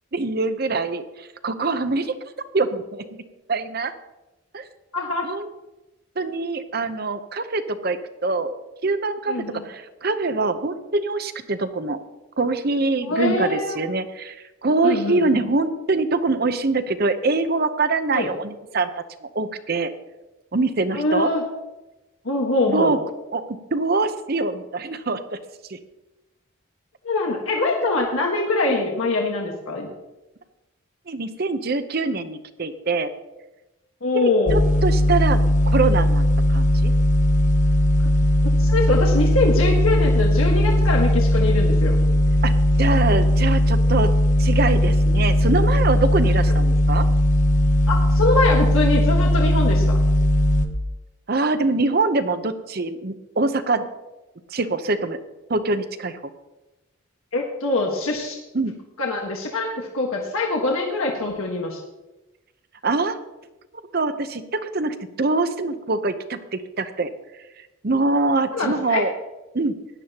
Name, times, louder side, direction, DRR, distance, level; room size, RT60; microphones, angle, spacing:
voice 1, 0.1-2.2 2.5-3.2 3.5-3.9 4.5-4.6 5.2-5.5 6.2-8.5 8.8-12.0 12.4-18.9 19.3-19.9 20.5-21.3 22.7-23.0 23.3-25.2 25.7-25.8 31.1-33.1 34.1-36.9 42.4-42.5 42.8-44.1 44.4-47.1 51.3-53.9 54.5-55.2 55.5-56.2 58.5-58.8 62.8-63.2 63.9-67.1 67.8-69.1 69.5-69.8, right 3 dB, 45° right, 10 dB, 0.8 m, -24 dB
voice 2, 4.9-5.3 9.3-9.6 13.0-13.8 14.8-15.4 18.1-18.3 20.9-21.4 22.2-22.9 27.0-29.9 34.0-34.6 38.4-42.0 47.9-50.0 57.3-58.4 59.0-61.8 68.5-69.0, left 2 dB, 85° left, 0 dB, 1.5 m, -23 dB
sound 1, 34.5-50.7, left 1 dB, 35° left, 0.9 m, -18 dB
17.0 x 11.0 x 2.9 m, 1.0 s
head